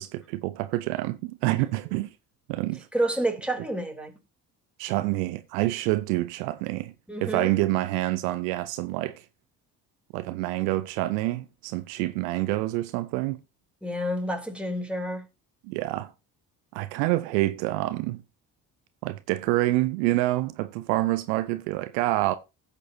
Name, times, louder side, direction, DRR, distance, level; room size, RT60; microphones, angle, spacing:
voice 1, 0.0-2.1 2.5-2.9 4.8-6.9 7.2-9.2 10.1-13.4 15.6-16.1 16.7-18.2 19.0-22.3, right 18 dB, 75° right, 0.7 m, -27 dB
voice 2, 2.9-4.1 7.1-7.5 13.8-15.2, right 1 dB, ahead, 3.3 m, -29 dB
16.0 x 6.8 x 2.7 m
hypercardioid pair, 50°, 49 cm